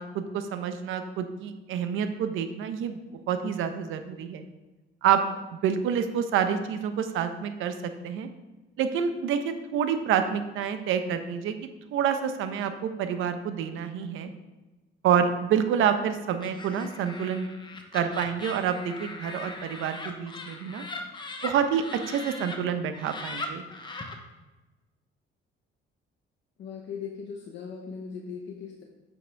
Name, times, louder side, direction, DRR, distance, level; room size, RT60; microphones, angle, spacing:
voice 1, 0.0-3.0 3.3-4.4 5.0-5.2 5.6-7.7 8.0-8.3 8.8-11.5 11.9-14.3 15.0-17.5 17.9-20.8 21.4-23.6, right 8 dB, 80° right, 8 dB, 0.9 m, -27 dB
Laughter, 16.4-22.6 22.9-24.1, left 3 dB, 20° left, 1.0 m, -40 dB
voice 2, 26.6-28.8, left 6 dB, 65° left, 1 dB, 1.0 m, -39 dB
7.8 x 7.2 x 3.4 m, 1.1 s
cardioid pair, 120°, 20 cm